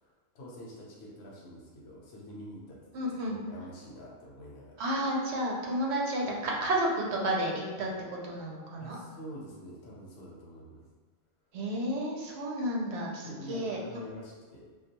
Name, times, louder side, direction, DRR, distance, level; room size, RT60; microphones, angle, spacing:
voice 1, 0.0-2.8 3.3-4.8 8.8-10.8 13.2-14.7, equal, 80° left, -4 dB, 0.9 m, -46 dB
voice 2, 2.9-3.4 4.8-7.9 8.2-9.0 11.5-13.8, right 1 dB, 85° right, -2 dB, 0.8 m, -31 dB
2.3 x 2.2 x 2.8 m, 1.4 s
omnidirectional pair, 1.1 m